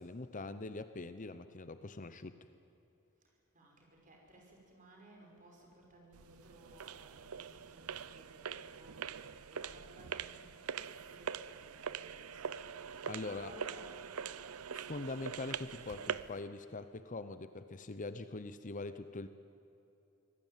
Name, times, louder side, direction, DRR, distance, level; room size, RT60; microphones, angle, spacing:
voice 1, 0.0-2.3 13.0-13.5 14.7-19.3, left 3 dB, 35° left, 12 dB, 0.7 m, -43 dB
voice 2, 3.2-14.5, right 1 dB, 35° right, 0 dB, 5.5 m, -59 dB
sound 1, 6.1-16.4, right 7 dB, 75° right, 0.7 m, -43 dB
24.5 x 18.0 x 9.2 m, 3.0 s
head